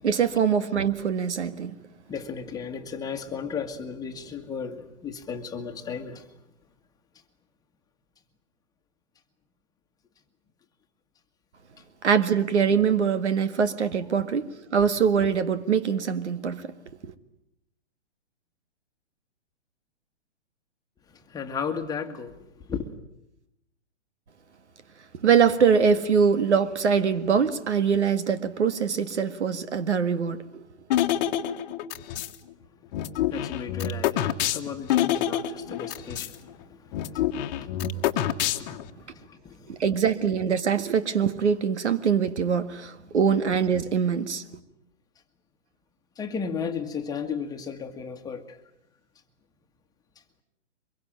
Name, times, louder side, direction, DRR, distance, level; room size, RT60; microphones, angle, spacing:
voice 1, 0.0-1.8 12.0-16.6 17.0-17.1 25.2-30.6 39.7-44.4, right 6 dB, 75° right, 1.8 m, -23 dB
voice 2, 2.1-6.2 21.3-22.8 33.3-36.4 37.1-39.8 46.2-48.4, left 6 dB, 10° left, 1.7 m, -35 dB
sound 1, 30.9-32.3 32.9-36.3 36.6-36.7 36.9-38.9, left 11 dB, 40° left, 1.4 m, -27 dB
24.0 x 22.5 x 8.9 m
hypercardioid pair, 130°, 35 cm